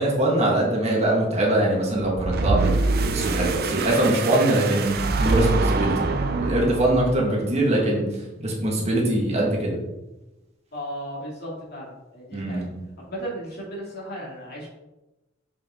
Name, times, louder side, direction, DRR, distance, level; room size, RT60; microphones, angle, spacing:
voice 1, 0.0-6.1 6.4-8.0 8.4-9.8 12.3-12.6, right 1 dB, 35° right, -3 dB, 1.8 m, -22 dB
sound 1, 2.2-7.3, right 3 dB, 55° right, 0.6 m, -25 dB
voice 2, 10.7-12.6 13.0-14.7, equal, 55° left, -4 dB, 2.6 m, -35 dB
7.2 x 5.1 x 3.7 m, 1.0 s
head